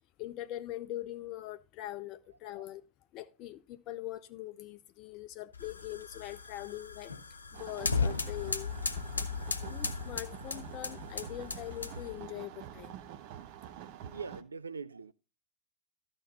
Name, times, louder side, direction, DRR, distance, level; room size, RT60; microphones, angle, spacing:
voice 1, 0.2-2.8 3.1-7.1 7.5-8.7 9.7-12.9, left 14 dB, 40° left, 0.4 m, -42 dB
sound 1, 5.5-12.2, left 4 dB, 75° left, 0.7 m, -36 dB
sound 2, 7.5-14.4, right 10 dB, 45° right, 0.8 m, -47 dB
voice 2, 14.0-15.1, right 5 dB, 75° right, 0.4 m, -43 dB
13.5 x 5.2 x 4.1 m
figure-of-eight pair, 90°, 0 cm